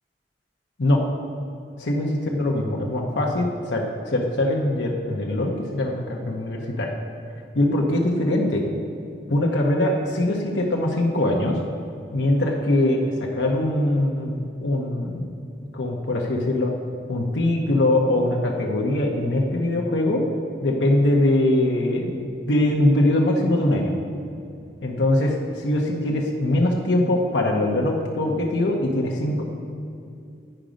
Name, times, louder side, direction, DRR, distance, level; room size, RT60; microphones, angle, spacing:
voice 1, 1.8-6.9 7.5-8.6 9.3-11.6 12.1-15.3 15.7-16.7 17.1-20.2 20.6-23.9 24.8-29.4, left 1 dB, 80° left, -1 dB, 0.8 m, -22 dB
9.0 x 5.1 x 5.0 m, 2.5 s
head